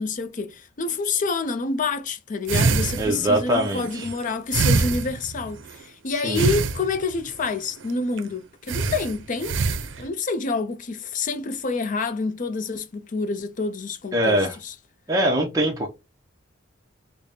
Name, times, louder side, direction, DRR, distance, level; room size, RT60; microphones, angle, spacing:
voice 1, 0.0-9.6 10.0-14.7, left 4 dB, 40° left, 0.5 m, -28 dB
sound 1, 2.5-5.8 6.4-7.3 7.8-7.9 8.2-8.3 8.7-10.1, right 4 dB, 75° right, 0.5 m, -25 dB
voice 2, 3.0-4.1 6.2-6.4 14.1-14.6 15.1-15.9, right 1 dB, 20° right, 0.6 m, -22 dB
5.0 x 2.0 x 2.7 m
head